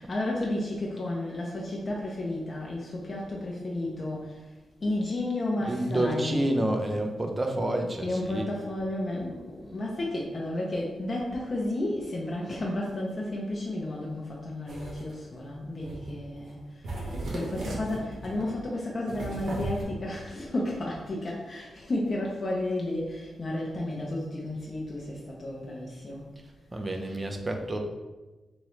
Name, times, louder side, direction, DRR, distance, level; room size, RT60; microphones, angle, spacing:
voice 1, 0.0-4.5 4.8-6.4 8.0-26.2 27.1-27.2, left 1 dB, 35° left, -3 dB, 0.6 m, -32 dB
voice 2, 5.7-8.5 26.7-27.8, right 1 dB, 20° right, 3 dB, 0.4 m, -29 dB
sound 1, 14.7-15.1 15.8-16.2 16.5-16.6 16.8-18.5 19.1-19.8, right 2 dB, 70° right, 1.0 m, -36 dB
3.6 x 3.0 x 3.1 m, 1.2 s
wide cardioid pair, 120°, 0 cm